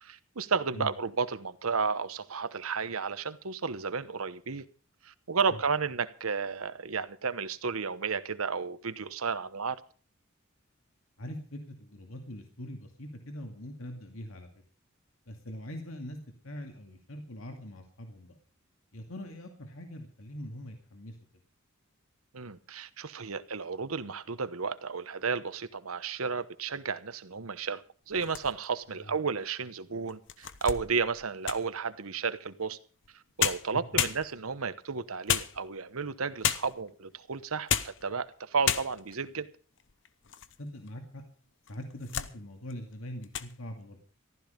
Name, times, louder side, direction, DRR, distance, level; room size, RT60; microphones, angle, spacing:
voice 1, 0.0-4.6 5.0-9.8 22.3-27.8 28.1-32.8 33.4-39.5, right 5 dB, 90° right, 1.0 m, -32 dB
voice 2, 11.2-14.5 15.3-16.2 16.4-18.3 18.9-21.2 28.9-29.1 33.9-34.0 40.6-41.2 41.7-44.0, left 1 dB, 75° left, 2.3 m, -42 dB
sound 1, 28.1-28.8 29.4-29.5 30.1-31.8 33.0-33.1 33.4-34.6 35.3-36.0 36.4-36.9 37.5-38.1 38.3-38.4 38.6-39.2 39.8-40.6 40.9-41.0 41.7-42.4 42.7-42.9 43.2-43.5, left 9 dB, 60° left, 0.8 m, -32 dB
15.0 x 12.5 x 5.2 m
head